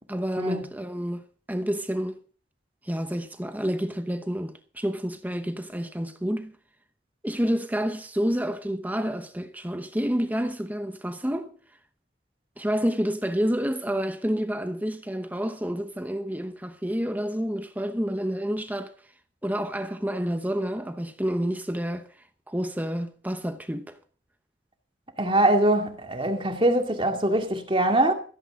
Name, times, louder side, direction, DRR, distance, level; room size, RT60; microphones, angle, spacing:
voice 1, 0.1-2.2 2.8-6.5 7.2-11.5 12.6-18.9 19.4-22.1 22.5-24.0, equal, 10° right, 0.9 m, -29 dB
voice 2, 25.2-28.1, right 1 dB, 30° right, 2.2 m, -23 dB
15.0 x 15.0 x 3.7 m
head